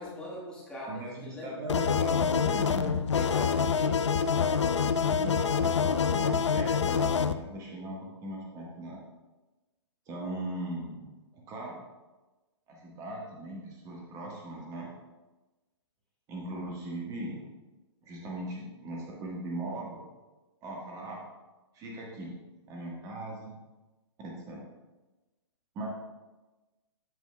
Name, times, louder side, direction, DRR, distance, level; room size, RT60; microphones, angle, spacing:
voice 1, 0.0-1.7 3.1-4.3, left 1 dB, 5° left, -6 dB, 1.5 m, -41 dB
voice 2, 0.9-3.0 5.1-9.0 10.1-11.8 12.7-14.9 16.3-17.5 18.0-20.1 20.6-21.2 21.7-22.3 22.7-23.6 24.2-24.6 25.7-25.9, right 1 dB, 25° right, -2 dB, 1.4 m, -39 dB
sound 1, 1.7-7.3, left 6 dB, 75° left, 0.4 m, -26 dB
13.0 x 5.1 x 2.3 m, 1.1 s
figure-of-eight pair, 125°, 15 cm